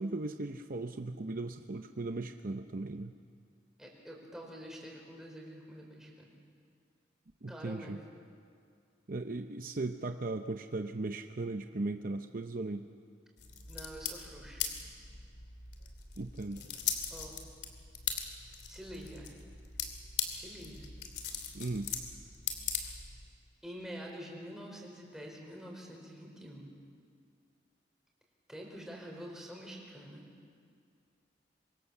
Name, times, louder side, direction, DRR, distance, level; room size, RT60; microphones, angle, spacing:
voice 1, 0.0-3.1 7.4-8.0 9.1-12.9 16.2-16.6 21.5-21.9, right 2 dB, 50° right, 7 dB, 0.7 m, -37 dB
voice 2, 3.8-6.4 7.5-8.0 13.7-14.6 17.1-17.4 18.7-19.3 20.3-20.9 22.8-23.0 23.6-26.7 28.5-30.3, equal, 5° right, -1 dB, 4.7 m, -47 dB
sound 1, 13.4-23.3, left 7 dB, 70° left, 2.9 m, -40 dB
25.5 x 24.0 x 7.2 m, 2.2 s
head